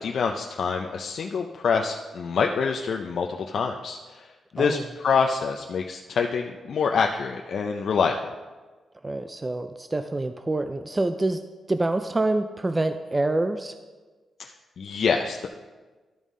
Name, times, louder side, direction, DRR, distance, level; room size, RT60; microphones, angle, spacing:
voice 1, 0.0-8.3 14.4-15.5, left 5 dB, 65° left, 3 dB, 0.4 m, -26 dB
voice 2, 9.0-11.4 11.7-13.7, right 2 dB, 20° right, 8 dB, 0.3 m, -26 dB
12.5 x 5.4 x 3.7 m, 1.3 s
wide cardioid pair, 130°, 0 cm